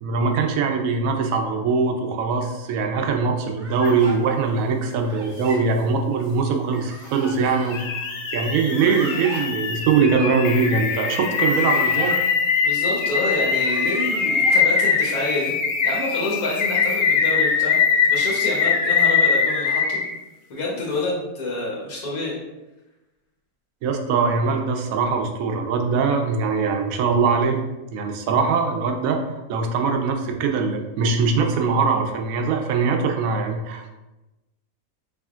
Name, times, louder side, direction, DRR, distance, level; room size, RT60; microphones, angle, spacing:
voice 1, 0.0-12.2 23.8-34.0, right 5 dB, 70° right, 3 dB, 1.0 m, -22 dB
sound 1, 3.6-4.2 5.0-5.6 6.7-7.5 8.6-9.4 11.1-12.2 13.3-14.6, right 2 dB, 50° right, 0.7 m, -38 dB
sound 2, 3.8-3.9 7.2-20.1, left 6 dB, 65° left, 0.7 m, -22 dB
voice 2, 12.6-15.5 15.8-17.8 18.1-20.0 20.5-22.4, left 2 dB, 85° left, -4 dB, 1.4 m, -27 dB
4.9 x 3.5 x 2.4 m, 1.0 s
omnidirectional pair, 1.6 m